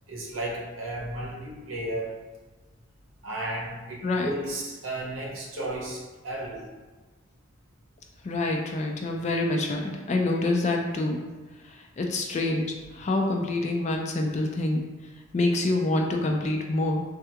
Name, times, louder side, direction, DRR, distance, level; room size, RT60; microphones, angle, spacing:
voice 1, 0.1-2.2 3.2-6.7, right 1 dB, 75° right, -3 dB, 0.8 m, -34 dB
voice 2, 8.2-11.2 11.6-14.8 15.3-17.0, left 2 dB, 35° left, 1 dB, 0.3 m, -26 dB
3.3 x 2.4 x 2.8 m, 1.2 s
head